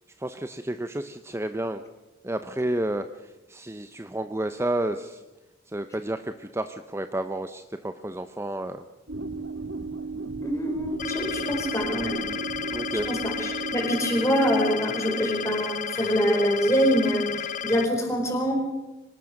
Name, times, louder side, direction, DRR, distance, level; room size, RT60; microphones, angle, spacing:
voice 1, 0.2-1.8 2.2-5.2 5.7-8.9 12.7-13.1, right 1 dB, 15° right, 9 dB, 0.7 m, -31 dB
sound 1, 9.1-15.7, right 4 dB, 90° right, 2.0 m, -35 dB
voice 2, 10.4-12.2 13.1-18.6, equal, 15° left, 3 dB, 4.8 m, -25 dB
sound 2, 11.0-17.9, left 8 dB, 40° left, 0.9 m, -33 dB
24.5 x 19.5 x 6.5 m, 1.0 s
head